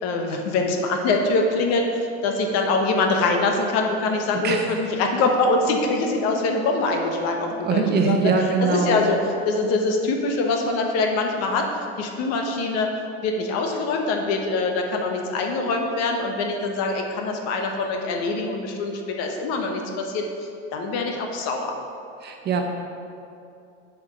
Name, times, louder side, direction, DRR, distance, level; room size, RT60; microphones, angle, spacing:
voice 1, 0.0-8.3 8.6-9.2 9.4-11.7 12.0-12.9 13.2-20.3 20.7-21.7, left 3 dB, 55° left, 3 dB, 1.0 m, -24 dB
voice 2, 7.5-9.1 22.2-22.6, right 5 dB, 35° right, 2 dB, 0.9 m, -22 dB
7.2 x 4.8 x 5.0 m, 2.6 s
supercardioid pair, 110°, 30 cm